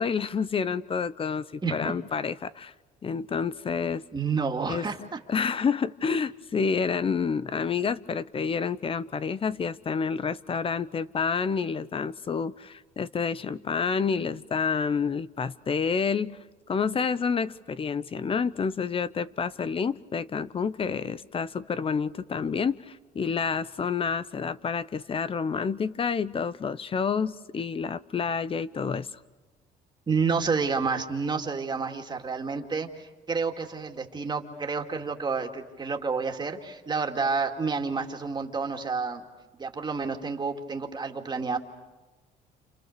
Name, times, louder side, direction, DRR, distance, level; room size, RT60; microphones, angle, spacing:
voice 1, 0.0-2.7 3.0-4.0 4.7-4.9 5.3-16.4 16.7-29.1, left 6 dB, 35° left, 16 dB, 0.8 m, -29 dB
voice 2, 1.6-1.9 4.1-5.2 30.1-39.2 39.6-41.6, right 5 dB, 25° right, 3 dB, 2.5 m, -29 dB
29.5 x 28.5 x 6.8 m, 1.2 s
cardioid pair, 110°, 17 cm